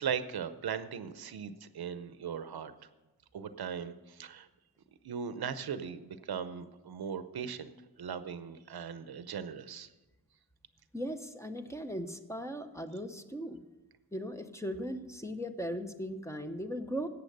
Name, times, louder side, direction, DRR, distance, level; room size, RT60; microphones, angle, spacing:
voice 1, 0.0-2.9 3.3-4.5 5.0-7.7 8.0-9.9, right 7 dB, 85° right, 12 dB, 0.8 m, -38 dB
voice 2, 10.9-13.6 14.1-17.1, equal, 10° left, 7 dB, 0.8 m, -38 dB
12.0 x 8.3 x 6.6 m, 1.1 s
wide cardioid pair, 95°, 36 cm